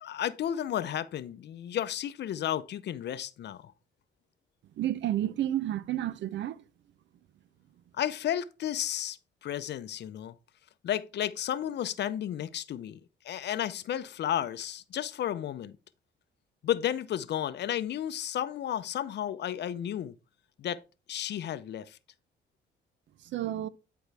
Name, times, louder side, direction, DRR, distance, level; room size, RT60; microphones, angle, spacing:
voice 1, 0.0-3.6 7.9-10.3 10.8-13.0 13.2-15.7 16.6-20.1 20.6-20.8 21.1-22.0, left 11 dB, 60° left, 0.6 m, -33 dB
voice 2, 4.8-6.6 23.2-23.7, right 12 dB, 65° right, 0.6 m, -31 dB
10.5 x 4.5 x 3.3 m
cardioid pair, 90°, 20 cm